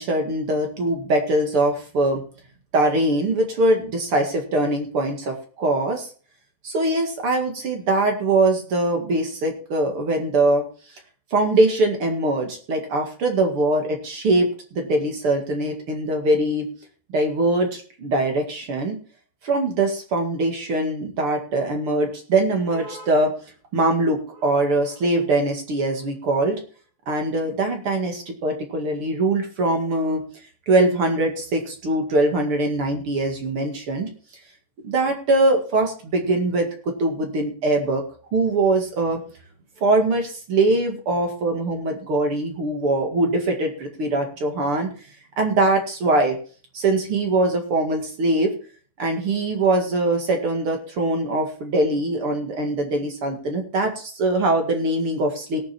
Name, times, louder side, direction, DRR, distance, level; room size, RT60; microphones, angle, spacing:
voice 1, 0.0-2.2 2.7-6.1 6.6-10.6 11.3-16.7 17.1-19.0 19.4-23.3 23.7-26.6 27.1-30.2 30.7-34.1 34.8-38.0 38.3-39.2 39.8-44.9 45.4-46.4 46.7-48.5 49.0-55.6, right 2 dB, 45° right, 3 dB, 2.0 m, -22 dB
19.0 x 7.0 x 4.4 m, 0.41 s
omnidirectional pair, 5.3 m